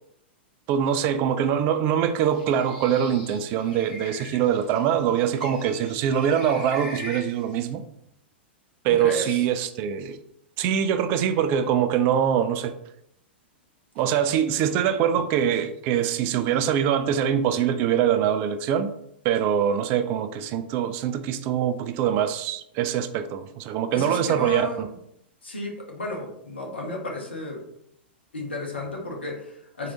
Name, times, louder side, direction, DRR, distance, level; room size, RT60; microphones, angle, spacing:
voice 1, 0.7-7.8 8.8-10.2 10.6-12.7 14.0-18.9 19.2-24.9, right 9 dB, 35° right, 0.4 m, -23 dB
Bird, 2.2-7.7, left 1 dB, 45° left, 1.4 m, -42 dB
voice 2, 9.0-9.4 23.9-25.0 25.4-27.7 28.3-29.9, left 1 dB, 70° left, 1.3 m, -33 dB
4.6 x 3.8 x 2.9 m
figure-of-eight pair, 100°, 6 cm